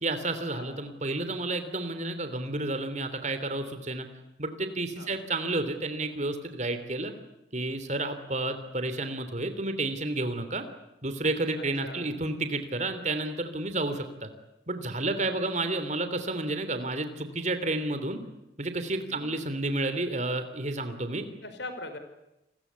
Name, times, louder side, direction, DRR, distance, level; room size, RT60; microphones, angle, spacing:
voice 1, 0.0-4.1 4.4-7.1 7.5-10.6 11.0-14.3 14.7-18.2 18.6-21.2, right 2 dB, 40° right, 9 dB, 3.2 m, -31 dB
voice 2, 11.6-12.1 19.0-19.4 21.4-22.0, left 2 dB, 70° left, 8 dB, 4.7 m, -42 dB
29.5 x 21.5 x 8.4 m, 0.91 s
head